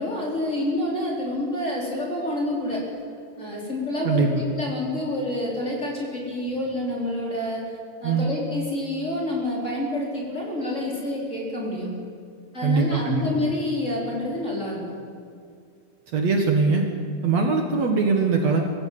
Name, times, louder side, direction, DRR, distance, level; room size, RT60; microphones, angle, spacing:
voice 1, 0.0-2.9 3.4-4.3 4.6-12.0 12.5-15.0, left 1 dB, 20° left, -3 dB, 4.6 m, -28 dB
voice 2, 4.0-4.4 8.0-8.3 12.6-13.5 16.1-16.9 17.2-18.6, right 4 dB, 55° right, 2 dB, 2.8 m, -22 dB
24.5 x 15.5 x 8.7 m, 2.3 s
omnidirectional pair, 3.8 m